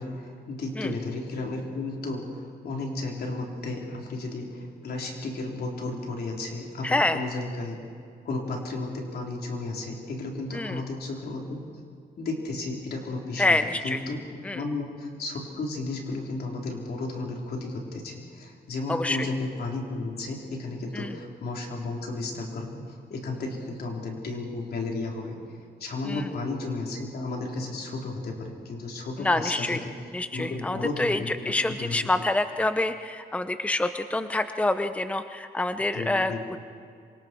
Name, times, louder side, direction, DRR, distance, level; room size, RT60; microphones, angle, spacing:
voice 1, 0.0-7.8 8.2-11.6 12.2-14.2 14.5-29.9 30.3-31.5 31.8-32.0 35.9-36.4, left 2 dB, 70° left, 0 dB, 4.2 m, -33 dB
voice 2, 6.8-7.2 10.5-10.8 13.4-14.0 14.4-14.6 18.9-19.3 20.9-21.1 26.0-26.3 29.2-29.8 30.1-36.6, left 2 dB, 10° left, 9 dB, 0.8 m, -27 dB
27.0 x 25.0 x 4.7 m, 2.3 s
cardioid pair, 90°, 17 cm